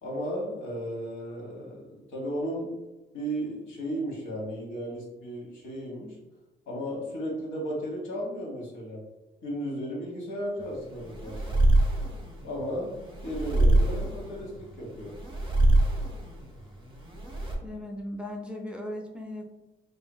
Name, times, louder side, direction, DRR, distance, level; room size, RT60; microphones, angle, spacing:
voice 1, 0.0-2.7 3.1-6.2 6.7-9.0 9.4-11.4 12.4-12.9 13.2-15.1, equal, 80° left, -3 dB, 1.1 m, -34 dB
sound 1, 10.6-17.6, right 1 dB, 25° right, 0.8 m, -26 dB
voice 2, 17.6-19.5, left 1 dB, 5° right, 1 dB, 0.4 m, -37 dB
2.8 x 2.5 x 2.2 m, 1.0 s
cardioid pair, 90°, 20 cm